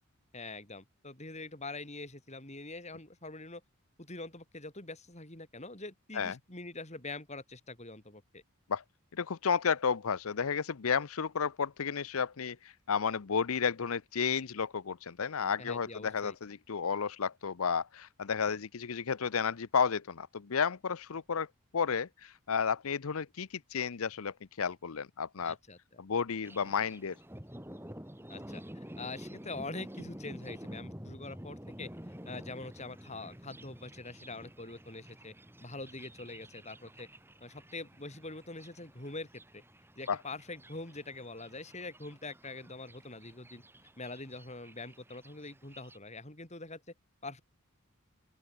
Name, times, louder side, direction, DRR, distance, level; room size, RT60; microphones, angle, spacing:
voice 1, 0.3-3.6 4.0-8.4 15.6-16.3 25.4-26.0 28.3-31.9 32.2-35.3 35.6-37.1 37.4-39.6 40.0-43.6 44.0-46.8 47.2-47.4, left 2 dB, 30° left, 4.8 m, -44 dB
voice 2, 9.2-21.5 21.7-25.6 26.0-27.1 40.1-40.2, left 6 dB, 70° left, 0.7 m, -32 dB
Thunder, 26.4-46.0, equal, 10° right, 6.5 m, -50 dB
open air
head